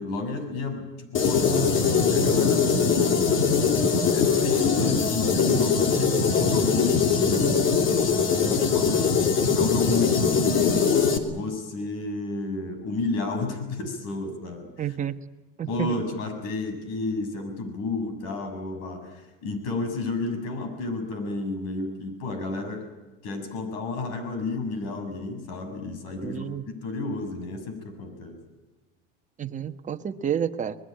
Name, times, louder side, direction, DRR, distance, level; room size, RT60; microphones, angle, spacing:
voice 1, 0.0-3.3 4.1-7.7 8.2-11.0 11.3-14.9 15.7-22.9 23.2-26.5 26.8-28.4, left 3 dB, 60° left, 7 dB, 6.9 m, -31 dB
sound 1, 1.1-11.2, left 5 dB, 40° left, 3.1 m, -22 dB
voice 2, 14.8-15.1 15.6-16.0 26.2-26.6 29.4-30.8, right 9 dB, 25° right, 7 dB, 1.3 m, -30 dB
22.5 x 21.5 x 9.0 m, 1.2 s
supercardioid pair, 120°, 30 cm